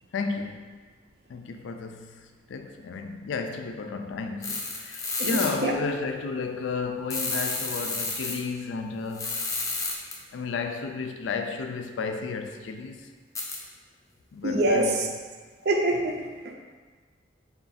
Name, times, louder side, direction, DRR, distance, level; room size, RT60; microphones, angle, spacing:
voice 1, 0.1-0.8 1.3-9.5 10.3-13.1 14.3-15.0, left 4 dB, 85° left, 5 dB, 0.3 m, -33 dB
sound 1, 4.4-5.5 7.1-8.3 9.1-10.1 13.4-13.6, left 3 dB, 15° left, 0.4 m, -30 dB
voice 2, 5.2-5.7 14.4-14.9 15.6-16.2 16.4-16.5, right 1 dB, 60° right, 2 dB, 0.4 m, -25 dB
3.7 x 2.4 x 4.0 m, 1.5 s
head